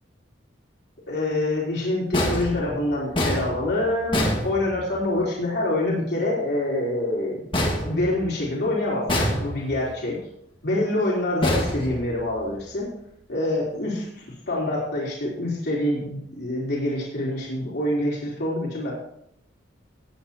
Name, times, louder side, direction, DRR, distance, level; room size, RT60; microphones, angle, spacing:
voice 1, 1.1-7.4 7.9-9.1 9.4-10.2 10.6-12.9 13.3-18.9, left 1 dB, 55° left, -5 dB, 3.7 m, -26 dB
sound 1, 2.1-5.2 7.5-8.6 9.1-9.9 11.4-12.5, left 1 dB, 25° left, 1.8 m, -26 dB
19.0 x 8.5 x 3.0 m, 0.74 s
head